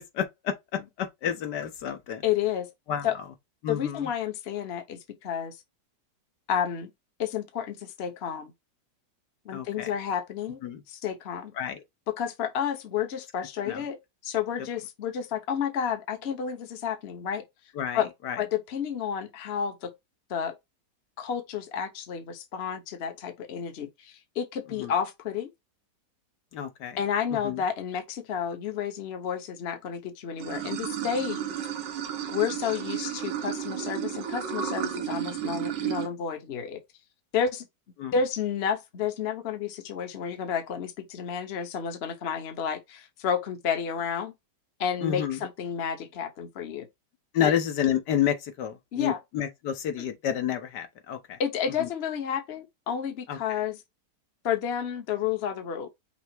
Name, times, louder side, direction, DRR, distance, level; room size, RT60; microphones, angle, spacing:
voice 1, 0.0-2.2 2.9-3.1 3.6-4.1 9.5-9.9 10.6-10.8 11.6-11.8 13.6-13.8 17.7-18.4 24.8-24.9 26.5-27.0 27.3-27.6 38.0-38.1 45.0-45.4 47.3-51.4 51.8-51.9 53.3-53.6, left 9 dB, 75° left, 1.5 m, -30 dB
voice 2, 2.2-2.7 3.0-3.1 3.7-5.6 6.5-6.9 7.2-8.5 9.4-11.5 12.1-17.4 17.9-18.1 18.4-19.9 20.3-20.5 21.2-25.5 27.0-31.4 32.3-36.8 37.3-37.7 38.1-44.3 44.8-46.9 47.4-47.5 48.9-49.2 51.4-53.8 54.4-55.9, left 8 dB, 45° left, 1.0 m, -31 dB
Water / Sink (filling or washing), 30.4-36.1, right 9 dB, 90° right, 1.6 m, -32 dB
5.8 x 2.0 x 4.4 m
omnidirectional pair, 1.9 m